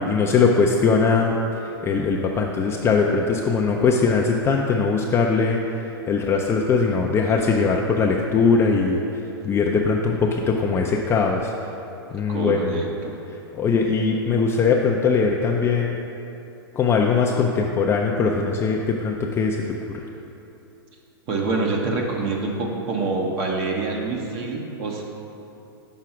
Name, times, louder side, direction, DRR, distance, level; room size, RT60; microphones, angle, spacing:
voice 1, 0.0-1.3 1.6-5.6 6.1-9.0 9.4-11.5 12.1-12.8 13.5-15.9 16.8-19.6, left 4 dB, 20° left, -1 dB, 0.4 m, -20 dB
voice 2, 12.3-13.2 21.3-25.0, right 3 dB, 40° right, 0 dB, 1.0 m, -26 dB
6.0 x 4.8 x 5.8 m, 2.9 s
hypercardioid pair, 125°, 13 cm